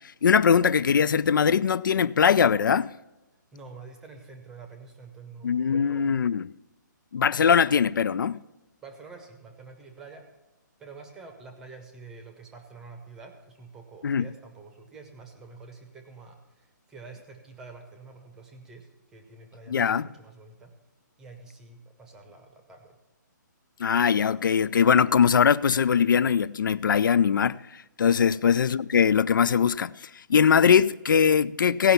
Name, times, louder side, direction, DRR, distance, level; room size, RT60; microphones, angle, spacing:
voice 1, 0.2-2.9 5.4-6.5 7.1-8.4 14.0-14.3 19.7-20.1 23.8-31.9, left 7 dB, 85° left, 0.4 m, -21 dB
voice 2, 3.5-6.2 8.8-10.3 10.8-20.8 21.2-23.0 28.2-28.4, right 4 dB, 5° right, 0.7 m, -47 dB
16.5 x 5.6 x 5.6 m
hypercardioid pair, 175°, 10 cm